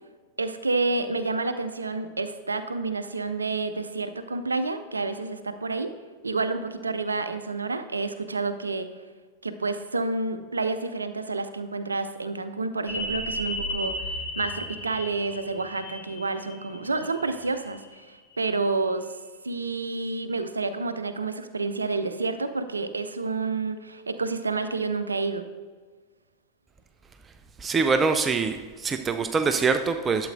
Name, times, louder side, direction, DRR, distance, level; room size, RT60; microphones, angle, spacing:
voice 1, 0.4-5.9 6.2-8.9 9.4-19.1 19.4-25.5, right 3 dB, 75° right, 10 dB, 0.5 m, -29 dB
sound 1, 12.9-18.2 18.5-18.6, left 1 dB, 30° left, 2.4 m, -35 dB
voice 2, 27.6-30.3, right 4 dB, 20° right, 7 dB, 0.4 m, -24 dB
11.5 x 7.7 x 2.6 m, 1.4 s
figure-of-eight pair, 90°, 0 cm